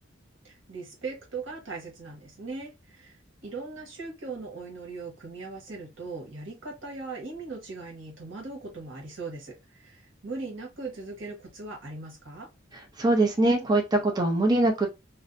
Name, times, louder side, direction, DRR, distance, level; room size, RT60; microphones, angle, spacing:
voice 1, 0.4-12.5, right 3 dB, 85° right, -1 dB, 1.1 m, -39 dB
voice 2, 13.0-14.9, right 2 dB, 20° right, 1 dB, 0.5 m, -22 dB
2.5 x 2.0 x 2.5 m, 0.24 s
head